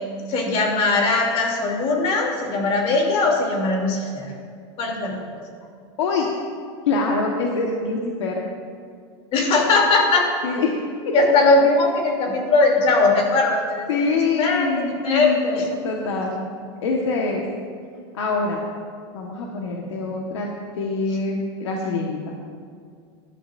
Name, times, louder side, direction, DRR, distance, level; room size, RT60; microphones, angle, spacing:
voice 1, 0.3-4.3 4.8-5.2 9.3-10.3 11.1-13.9 14.1-15.8, left 3 dB, 45° left, 0 dB, 3.0 m, -20 dB
voice 2, 6.9-8.4 10.4-11.1 13.9-16.4 16.8-17.4 18.1-18.6 19.1-22.3, left 3 dB, 90° left, -1 dB, 1.4 m, -25 dB
19.5 x 11.5 x 2.6 m, 2.2 s
supercardioid pair, 130°, 14 cm